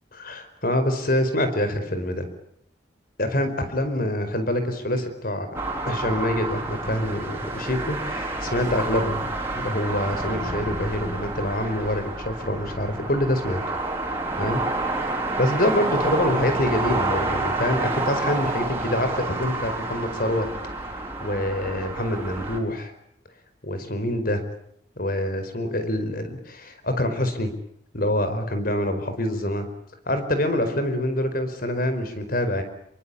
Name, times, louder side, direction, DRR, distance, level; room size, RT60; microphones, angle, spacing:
voice 1, 0.1-2.3 3.2-5.5 5.9-9.3 9.5-13.6 14.4-14.6 15.4-20.5 20.8-20.9 21.2-22.9 23.6-24.4 25.0-27.5 27.9-29.7 30.1-32.6, left 1 dB, 50° left, 9 dB, 4.8 m, -25 dB
sound 1, 5.5-22.6, right 2 dB, 15° right, 5.0 m, -29 dB
27.5 x 23.5 x 8.6 m, 0.71 s
head